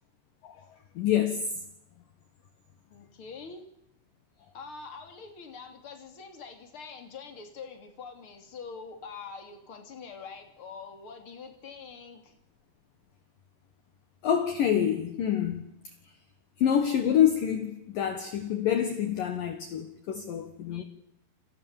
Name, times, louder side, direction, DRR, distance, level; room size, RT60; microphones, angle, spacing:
voice 1, 0.4-1.6 14.2-15.7 16.0-16.2 16.6-20.8, left 9 dB, 65° left, 2.3 m, -27 dB
voice 2, 2.9-3.7 4.5-12.3 20.7-20.8, left 5 dB, 30° left, 3.0 m, -44 dB
29.5 x 25.5 x 7.3 m
omnidirectional pair, 6.0 m